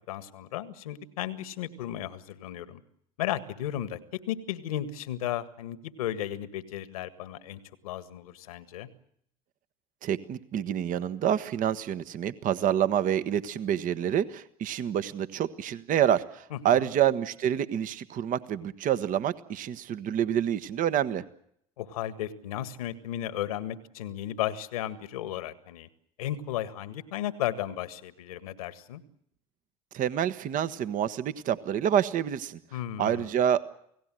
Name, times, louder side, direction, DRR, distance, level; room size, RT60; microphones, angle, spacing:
voice 1, 0.1-2.8 3.2-8.9 16.5-16.9 21.8-25.9 26.2-29.0 32.7-33.3, left 12 dB, 80° left, 13 dB, 1.8 m, -34 dB
voice 2, 10.0-21.2 29.9-32.6 33.0-33.7, right 10 dB, 45° right, 13 dB, 1.2 m, -27 dB
29.0 x 18.0 x 7.7 m, 0.71 s
hypercardioid pair, 70°, 18 cm